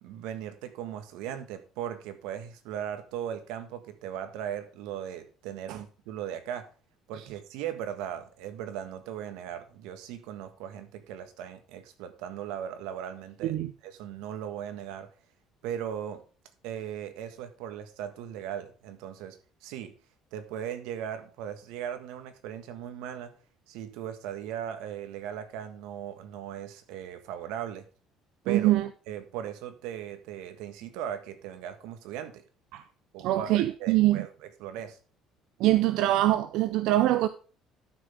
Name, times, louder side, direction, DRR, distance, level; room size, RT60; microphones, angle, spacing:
voice 1, 0.0-6.7 7.1-13.6 13.8-15.1 15.6-16.2 16.6-19.9 20.3-23.3 23.7-27.8 28.4-28.7 29.1-32.4 33.1-34.3 34.6-35.0, right 9 dB, 90° right, 1.5 m, -38 dB
voice 2, 28.5-28.9 32.7-32.8 33.2-34.3 35.6-37.3, right 15 dB, 65° right, 0.5 m, -24 dB
12.0 x 6.2 x 3.5 m
cardioid pair, 175°, 0 cm